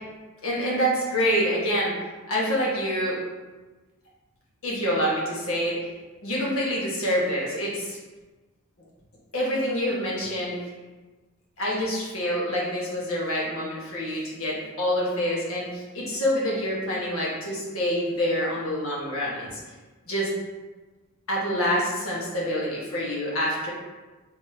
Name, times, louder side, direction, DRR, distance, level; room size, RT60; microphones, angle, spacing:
voice 1, 0.4-1.9 2.3-3.2 4.6-5.8 6.2-8.0 9.3-10.6 11.6-19.6 20.1-20.3 21.3-23.7, equal, 65° left, -5 dB, 1.4 m, -26 dB
4.1 x 3.7 x 2.8 m, 1.2 s
head